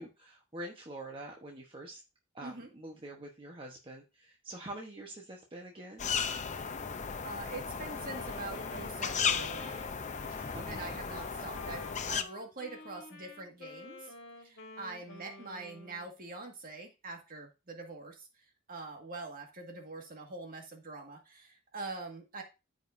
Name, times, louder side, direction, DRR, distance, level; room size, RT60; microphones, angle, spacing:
voice 1, 0.0-2.0 2.3-6.1 10.5-10.9, right 1 dB, 25° right, 0 dB, 1.1 m, -45 dB
sound 1, 6.0-12.2, left 6 dB, 35° left, 0.6 m, -35 dB
voice 2, 7.2-10.0 10.7-14.1 14.4-18.3 18.7-22.4, right 3 dB, 40° right, 2 dB, 2.0 m, -44 dB
Wind instrument woodwind instrument, 7.9-16.1, left 3 dB, 55° left, 1.8 m, -50 dB
14.0 x 5.2 x 2.7 m, 0.28 s
head